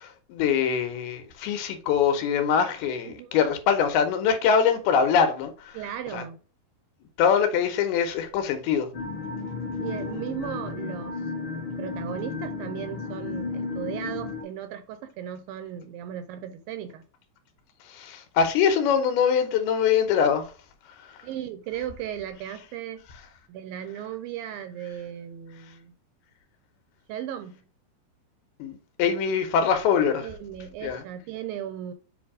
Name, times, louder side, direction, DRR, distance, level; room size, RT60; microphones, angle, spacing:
voice 1, 0.0-5.8 6.1-6.2 7.2-8.9 17.9-20.5 28.6-30.3 30.8-31.0, left 7 dB, 85° left, 2.9 m, -23 dB
voice 2, 3.1-3.4 5.7-6.4 9.8-11.2 11.8-17.0 21.2-23.0 23.5-25.9 27.1-27.5 30.2-31.9, right 10 dB, 80° right, 2.2 m, -36 dB
sound 1, 8.9-14.4, left 4 dB, 45° left, 1.7 m, -33 dB
7.7 x 2.7 x 4.8 m
omnidirectional pair, 4.5 m